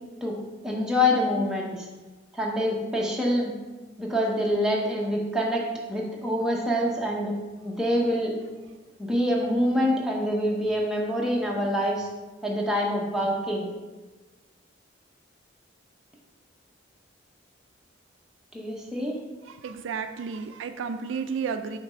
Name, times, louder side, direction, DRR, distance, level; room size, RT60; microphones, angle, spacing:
voice 1, 0.6-1.7 2.3-3.5 4.0-7.3 7.6-8.3 9.0-12.1 12.4-13.7 18.5-19.2, left 1 dB, 5° right, -3 dB, 0.8 m, -26 dB
voice 2, 19.4-21.8, right 6 dB, 75° right, 9 dB, 0.3 m, -32 dB
5.8 x 3.2 x 5.0 m, 1.2 s
head